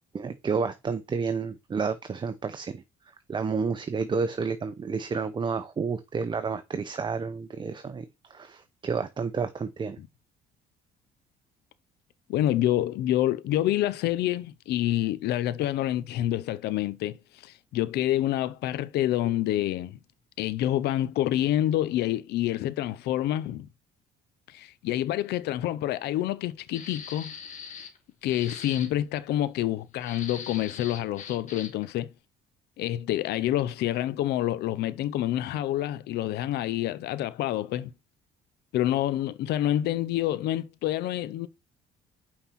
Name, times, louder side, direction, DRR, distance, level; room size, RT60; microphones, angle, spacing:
voice 1, 0.1-2.8 3.3-10.0, right 5 dB, 25° right, 0.7 m, -30 dB
voice 2, 12.3-20.0 20.4-23.7 24.5-27.3 27.7-27.9 28.2-32.1 32.8-37.9 38.7-41.5, left 13 dB, 75° left, 0.7 m, -27 dB
sound 1, 26.7-28.0 28.3-28.9 30.0-31.9, left 6 dB, 45° left, 1.8 m, -41 dB
5.7 x 4.3 x 5.8 m
cardioid pair, 110°, 17 cm